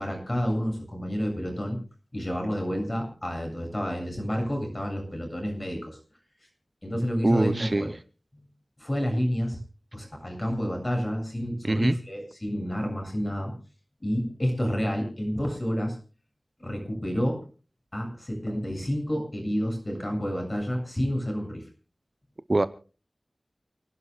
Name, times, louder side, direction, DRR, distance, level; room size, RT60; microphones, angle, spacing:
voice 1, 0.0-1.8 2.1-6.0 6.8-7.9 8.8-9.6 9.9-13.6 14.0-16.0 16.6-17.5 17.9-21.6, equal, 30° left, 7.3 m, -29 dB
voice 2, 7.2-7.9 11.6-11.9 22.5-22.7, right 2 dB, 45° right, 0.7 m, -23 dB
29.5 x 11.5 x 2.4 m
wide cardioid pair, 65°, 0 cm